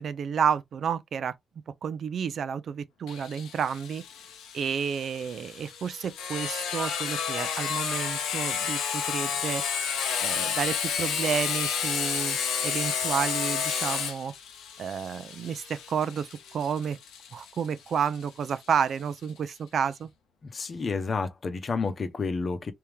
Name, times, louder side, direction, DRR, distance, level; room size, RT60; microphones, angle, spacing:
voice 1, 0.0-1.4 1.8-4.0 4.5-9.6 10.2-14.3 14.8-17.0 17.3-20.1, right 7 dB, 65° right, 0.5 m, -30 dB
Sawing, 3.1-18.5, left 7 dB, 90° left, 0.8 m, -31 dB
voice 2, 20.4-22.7, left 4 dB, 50° left, 0.8 m, -30 dB
3.4 x 2.8 x 3.4 m
supercardioid pair, 55°, 0 cm